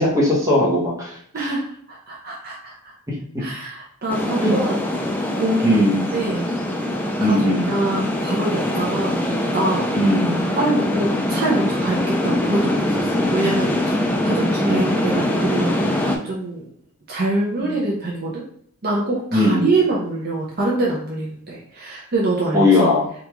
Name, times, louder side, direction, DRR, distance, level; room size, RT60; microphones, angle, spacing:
voice 1, 0.0-1.5 3.1-3.4 4.4-4.5 5.6-6.1 7.2-7.7 9.9-10.5 14.7-15.1 17.6-17.7 19.3-19.7 22.5-23.1, left 1 dB, 15° right, -4 dB, 1.0 m, -19 dB
voice 2, 1.3-2.9 3.4-4.8 5.4-5.7 6.1-6.5 7.2-9.2 9.5-9.9 10.6-13.9 14.2-16.7 17.1-18.5 18.8-22.7, right 2 dB, 45° right, -4 dB, 0.6 m, -25 dB
sound 1, 4.1-16.2, left 1 dB, 10° left, 0.3 m, -23 dB
3.4 x 2.6 x 2.9 m, 0.63 s
head